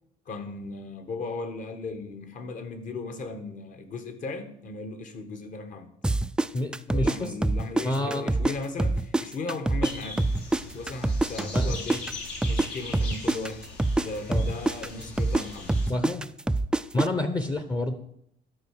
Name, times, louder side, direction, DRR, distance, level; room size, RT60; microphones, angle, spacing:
voice 1, 0.2-5.9 6.9-10.3 10.6-12.0 12.4-13.6 14.0-15.7, left 3 dB, 50° left, 8 dB, 1.5 m, -36 dB
sound 1, 6.0-8.5 8.8-12.7 12.9-17.1, right 2 dB, 5° right, 0.3 m, -25 dB
voice 2, 6.5-7.3 7.8-8.3 11.5-11.7 14.3-14.5 15.9-16.3 16.9-17.9, left 2 dB, 25° left, 9 dB, 0.9 m, -29 dB
sound 2, 9.8-15.9, left 3 dB, 75° left, 2.7 m, -41 dB
12.5 x 4.6 x 6.6 m, 0.72 s
cardioid pair, 110°, 17 cm